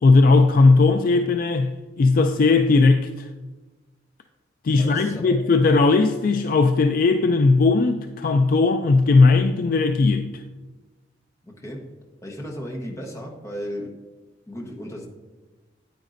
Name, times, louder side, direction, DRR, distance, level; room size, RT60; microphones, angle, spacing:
voice 1, 0.0-3.3 4.6-10.4, left 3 dB, 45° left, 0.3 m, -18 dB
voice 2, 4.7-5.4 11.4-11.9 12.2-14.0 14.5-15.1, equal, 15° left, 1.1 m, -35 dB
9.0 x 8.9 x 2.6 m
head